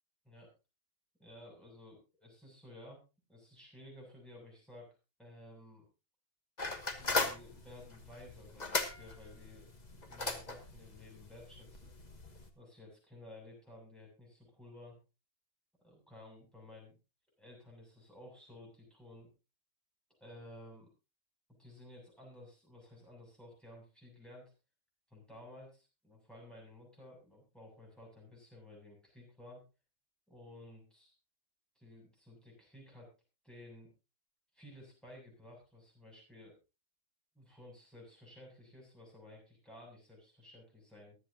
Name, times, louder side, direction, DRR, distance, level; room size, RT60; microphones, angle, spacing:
voice 1, 1.2-3.0 3.3-4.9 5.2-5.9 6.9-11.9 12.5-15.0 15.8-16.9 17.4-19.3 20.2-20.9 21.6-24.5 25.1-29.6 30.3-31.1 31.8-33.1 33.4-33.9 34.5-36.6 37.3-41.2, left 1 dB, ahead, -2 dB, 7.4 m, -54 dB
sound 1, 6.6-12.5, left 3 dB, 35° left, 1.5 m, -38 dB
23.5 x 8.4 x 2.8 m, 0.29 s
omnidirectional pair, 1.4 m